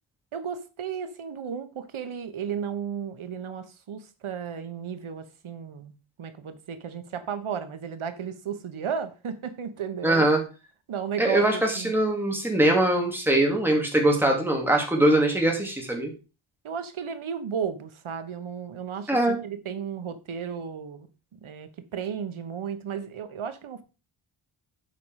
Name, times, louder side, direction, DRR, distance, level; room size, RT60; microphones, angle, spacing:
voice 1, 0.3-5.9 6.2-10.3 10.9-11.4 11.8-11.9 16.6-21.1 21.4-23.8, right 7 dB, 75° right, 1.2 m, -34 dB
voice 2, 10.0-10.4 11.2-16.1 19.1-19.4, right 1 dB, 5° right, 2.5 m, -22 dB
8.3 x 5.5 x 4.8 m
wide cardioid pair, 120°, 49 cm